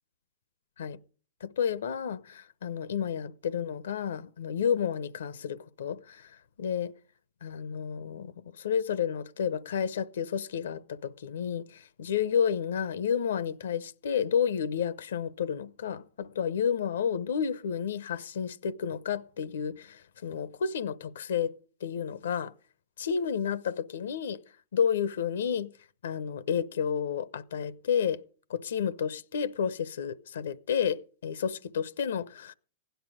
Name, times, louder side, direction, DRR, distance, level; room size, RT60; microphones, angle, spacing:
voice 1, 1.4-6.3 6.6-6.9 7.4-21.5 21.8-22.5 23.0-24.4 24.7-25.7 26.0-28.2 28.5-32.5, left 7 dB, 80° left, 0.9 m, -31 dB
16.0 x 10.5 x 5.1 m
hypercardioid pair, 130°, 0 cm